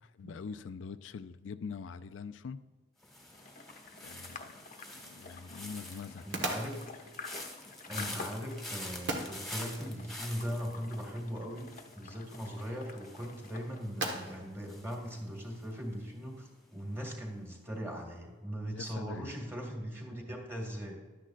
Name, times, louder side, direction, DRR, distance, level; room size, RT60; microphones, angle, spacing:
voice 1, 0.0-2.6 4.0-4.6 5.0-6.4 7.9-8.2 18.7-19.3, left 5 dB, 90° left, 12 dB, 0.4 m, -44 dB
sound 1, 3.0-16.1 16.3-16.8, left 1 dB, ahead, 1.5 m, -47 dB
sound 2, 3.3-13.8, left 4 dB, 45° left, 0.7 m, -50 dB
sound 3, 4.2-15.9, right 2 dB, 70° right, 1.4 m, -44 dB
voice 2, 6.3-7.1 7.9-11.7 11.9-20.9, equal, 15° right, 0 dB, 2.1 m, -39 dB
12.0 x 10.0 x 2.5 m, 1.4 s
head